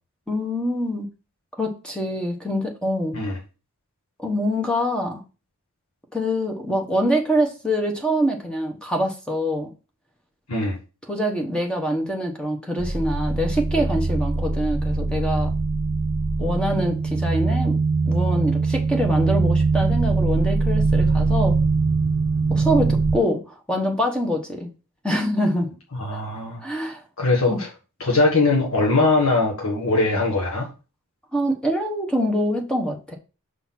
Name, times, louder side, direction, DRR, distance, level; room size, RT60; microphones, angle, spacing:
voice 1, 0.3-1.1 1.6-3.2 4.2-5.2 6.1-9.7 11.1-15.5 16.4-21.6 22.5-23.4 23.7-24.7 25.0-25.7 26.6-27.0 27.5-27.6 31.3-33.2, equal, 5° left, 2 dB, 1.0 m, -24 dB
sound 1, 12.8-23.2, right 3 dB, 40° right, 0.7 m, -22 dB
voice 2, 25.9-26.6 27.2-27.7 28.0-30.7, left 3 dB, 70° left, -2 dB, 1.6 m, -21 dB
5.9 x 4.0 x 5.8 m, 0.32 s
head